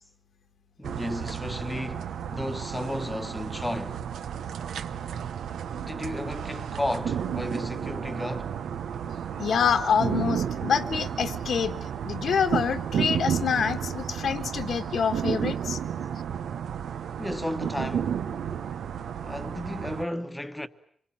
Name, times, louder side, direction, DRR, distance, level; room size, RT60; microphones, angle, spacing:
voice 1, 0.8-4.1 5.8-8.6 17.2-18.2 19.2-20.7, left 1 dB, 5° left, 1.2 m, -33 dB
sound 1, 0.8-20.0, right 8 dB, 90° right, 1.0 m, -32 dB
voice 2, 9.4-11.8 12.0-15.8, left 7 dB, 65° left, 1.5 m, -26 dB
27.0 x 22.0 x 8.7 m
wide cardioid pair, 145°, 0 cm